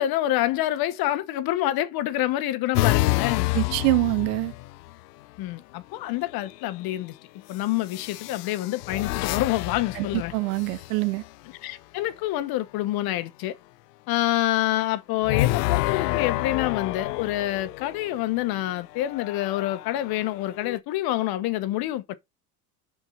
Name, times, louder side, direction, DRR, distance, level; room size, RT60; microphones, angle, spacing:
voice 1, 0.0-3.5 5.4-7.1 7.5-10.3 11.6-13.6 14.1-22.1, left 15 dB, 50° left, 1.2 m, -27 dB
sound 1, 2.7-5.0 6.3-6.7 7.9-11.3 15.2-18.2 18.9-20.8, left 18 dB, 85° left, 0.6 m, -28 dB
voice 2, 3.5-4.5 9.9-11.2, right 24 dB, 65° right, 0.8 m, -25 dB
6.0 x 4.6 x 5.8 m
supercardioid pair, 105°, 46 cm